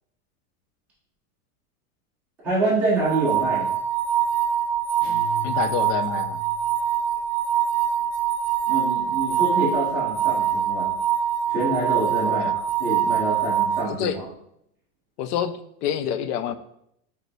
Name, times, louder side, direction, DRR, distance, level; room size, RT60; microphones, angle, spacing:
voice 1, 2.4-3.6 8.7-11.0 11.5-14.2, right 2 dB, 5° right, -10 dB, 0.3 m, -26 dB
sound 1, 3.0-13.8, right 9 dB, 50° right, 0.7 m, -24 dB
sound 2, 5.0-6.7, left 2 dB, 30° left, 0.9 m, -37 dB
voice 2, 5.4-6.4 12.2-12.6 13.9-14.2 15.2-16.6, left 9 dB, 75° left, 12 dB, 0.5 m, -27 dB
4.8 x 3.3 x 2.6 m, 0.75 s
supercardioid pair, 165°, 46 cm